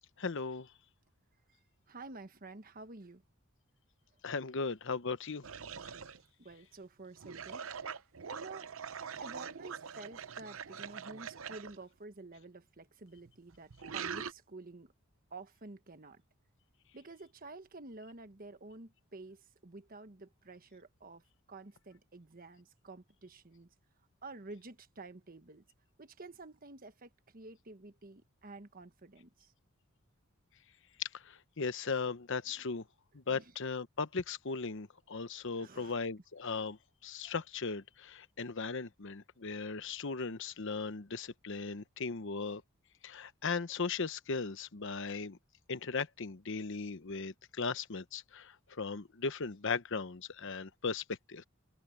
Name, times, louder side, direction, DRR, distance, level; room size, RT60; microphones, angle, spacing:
voice 1, 0.2-0.7 4.2-5.5 31.0-32.8 33.1-42.6 43.0-45.4 45.7-51.4, left 4 dB, 60° left, 0.9 m, -37 dB
voice 2, 1.9-3.2 6.4-7.7 8.3-8.7 9.2-14.9 15.3-16.2 16.9-21.2 21.5-23.7 24.2-25.6 26.0-29.5 33.3-33.5 35.6-35.9, right 3 dB, 40° right, 1.3 m, -50 dB
sound 1, 5.4-6.2 7.2-11.8 13.2-14.3, right 6 dB, 70° right, 0.8 m, -43 dB
head